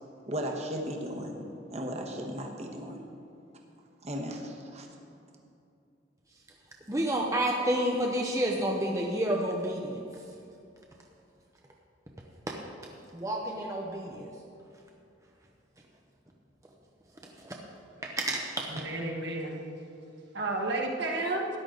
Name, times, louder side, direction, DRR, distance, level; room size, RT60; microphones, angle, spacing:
voice 1, 0.3-1.4 1.7-3.0 4.0-4.9, equal, 35° right, 1 dB, 1.2 m, -36 dB
voice 2, 6.9-10.0 12.5-12.6 13.1-14.3 17.4-17.5 18.0-18.7, right 1 dB, 15° right, -1 dB, 0.8 m, -29 dB
voice 3, 18.7-19.6 20.3-21.5, right 2 dB, 65° right, 0 dB, 1.5 m, -31 dB
13.5 x 10.5 x 3.9 m, 2.6 s
head